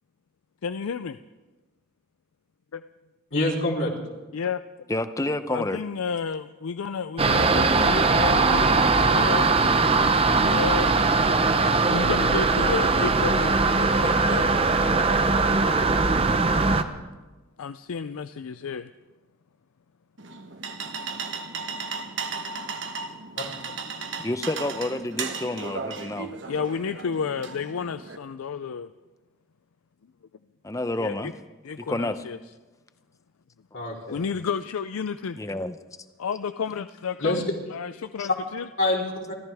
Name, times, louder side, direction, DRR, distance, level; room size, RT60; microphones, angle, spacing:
voice 1, 0.6-1.2 2.7-2.8 4.3-4.6 5.5-9.5 10.4-10.9 11.8-14.5 17.6-18.9 26.5-28.9 31.0-31.3 31.6-32.4 34.1-35.4 36.2-38.7, left 6 dB, 80° left, 0.4 m, -31 dB
voice 2, 3.3-3.9 23.4-23.5 33.7-34.2 37.2-37.4 38.8-39.3, left 2 dB, 60° left, 3.7 m, -26 dB
voice 3, 4.9-5.8 24.2-26.3 30.6-31.3 31.9-32.2 35.4-35.8 38.2-38.3, left 1 dB, 15° left, 0.6 m, -29 dB
sound 1, 7.2-16.8, right 3 dB, 25° right, 0.7 m, -20 dB
sound 2, 20.2-28.2, right 5 dB, 55° right, 1.1 m, -35 dB
28.5 x 14.0 x 3.5 m
head